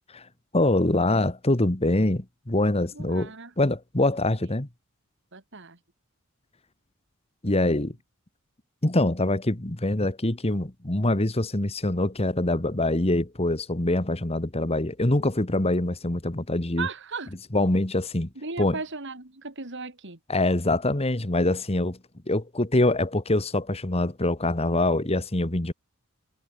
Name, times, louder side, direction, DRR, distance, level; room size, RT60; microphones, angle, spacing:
voice 1, 0.5-4.7 7.4-8.0 8.8-16.9 17.5-18.3 18.6-18.8 20.3-22.0 22.3-25.7, left 1 dB, 30° left, 1.7 m, -24 dB
voice 2, 2.9-3.5 4.0-4.1 5.3-5.8 16.8-17.3 18.3-20.2, right 4 dB, 55° right, 2.8 m, -36 dB
head